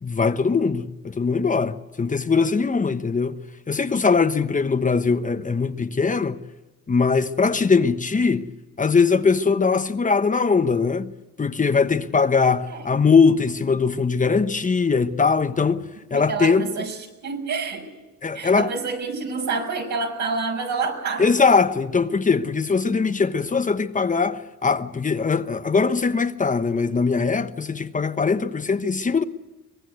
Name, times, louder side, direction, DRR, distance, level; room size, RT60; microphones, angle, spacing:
voice 1, 0.0-3.4 3.7-6.4 6.9-8.5 8.8-11.1 11.4-16.9 18.2-18.7 21.2-29.2, left 5 dB, 25° left, 1.1 m, -21 dB
voice 2, 16.1-17.0 17.2-17.9 18.3-21.2, right 4 dB, 70° right, 6.1 m, -28 dB
24.0 x 19.5 x 8.2 m
cardioid pair, 90°, 30 cm